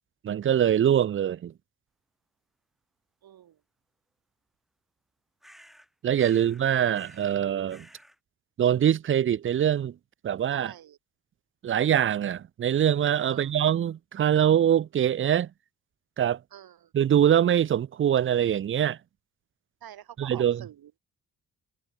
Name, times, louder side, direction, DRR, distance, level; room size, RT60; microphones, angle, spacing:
voice 1, 0.2-1.5 6.0-7.9 8.6-9.9 10.2-10.7 11.6-15.5 16.2-16.4 16.9-19.0 20.2-20.6, right 10 dB, 35° right, 0.4 m, -23 dB
voice 2, 3.2-3.6 10.5-11.0 13.3-13.5 16.5-16.9 19.8-21.0, right 11 dB, 65° right, 1.3 m, -47 dB
sound 1, 5.4-5.9 6.2-6.6 6.9-7.4 7.7-8.2, equal, ahead, 2.6 m, -53 dB
cardioid pair, 75°, 39 cm